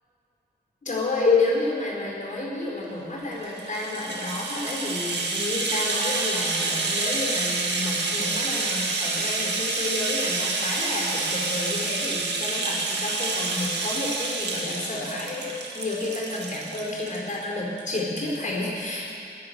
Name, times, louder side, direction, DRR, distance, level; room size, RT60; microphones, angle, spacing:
voice 1, 0.9-19.1, left 2 dB, 50° left, -3 dB, 4.5 m, -30 dB
Rattle (instrument), 3.3-17.4 17.8-17.9 18.2-18.3, right 3 dB, 90° right, 1.8 m, -28 dB
19.0 x 10.0 x 6.8 m, 2.6 s
wide cardioid pair, 75°, 17 cm